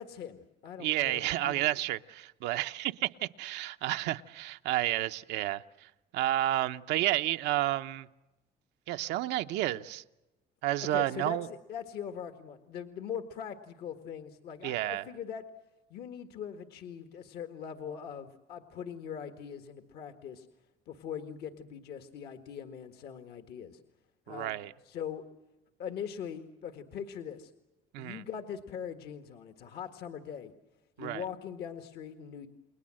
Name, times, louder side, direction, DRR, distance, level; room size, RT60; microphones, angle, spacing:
voice 1, 0.0-1.7 10.8-11.4 11.7-15.4 15.9-20.5 20.9-23.8 24.3-24.6 24.8-25.2 25.8-27.5 28.0-30.5 31.0-32.5, left 8 dB, 70° left, 1.7 m, -41 dB
voice 2, 0.8-8.1 8.9-10.0 10.6-11.5 14.6-15.0 24.3-24.7 27.9-28.2 31.0-31.2, right 15 dB, 90° right, 0.8 m, -31 dB
29.5 x 21.5 x 7.7 m
cardioid pair, 110°, 17 cm